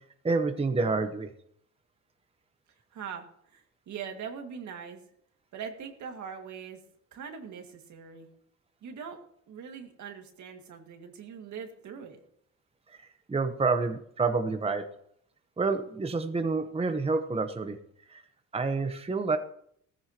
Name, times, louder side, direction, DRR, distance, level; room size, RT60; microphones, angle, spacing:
voice 1, 0.2-1.3 12.9-14.9 15.6-17.8 18.1-18.2 18.5-19.4, right 4 dB, 20° right, 7 dB, 0.9 m, -28 dB
voice 2, 2.9-5.0 5.5-6.8 7.1-8.3 8.8-9.2 9.5-12.2, right 7 dB, 70° right, 4 dB, 2.0 m, -42 dB
16.5 x 14.5 x 2.9 m, 0.68 s
cardioid pair, 90°, 30 cm